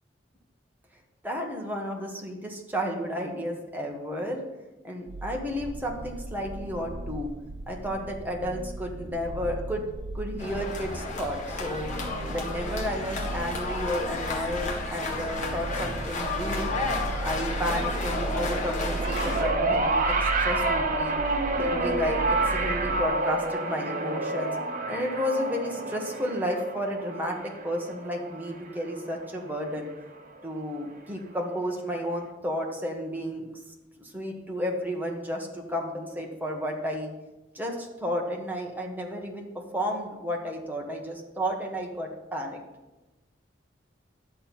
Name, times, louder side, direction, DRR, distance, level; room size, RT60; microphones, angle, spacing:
voice 1, 1.2-4.4 4.8-7.3 7.7-9.8 10.1-11.9 12.3-16.7 17.2-21.2 21.6-24.6 24.9-29.9 30.4-33.5 34.0-37.1 37.5-39.5 39.7-42.6, equal, 10° right, 0 dB, 1.5 m, -32 dB
sound 1, 5.1-23.0, right 2 dB, 75° right, 0.7 m, -36 dB
sound 2, 10.4-19.4, left 3 dB, 45° left, 1.7 m, -32 dB
sound 3, 18.9-29.4 30.4-30.5, right 2 dB, 45° right, 1.0 m, -28 dB
11.0 x 7.7 x 4.4 m, 1.1 s
head